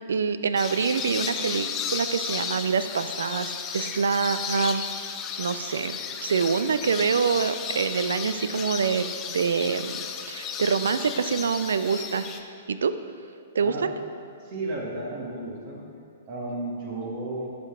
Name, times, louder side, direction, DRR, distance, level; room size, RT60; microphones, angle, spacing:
voice 1, 0.1-4.8 5.4-10.0 10.3-12.3 12.7-13.0 13.5-13.9, right 5 dB, 70° right, 12 dB, 0.4 m, -26 dB
sound 1, 0.6-12.4, left 7 dB, 25° left, 0.5 m, -34 dB
voice 2, 13.6-13.9 14.4-15.8 16.3-17.5, right 2 dB, 45° right, -2 dB, 1.8 m, -33 dB
12.0 x 4.8 x 3.7 m, 2.3 s
figure-of-eight pair, 115°, 0 cm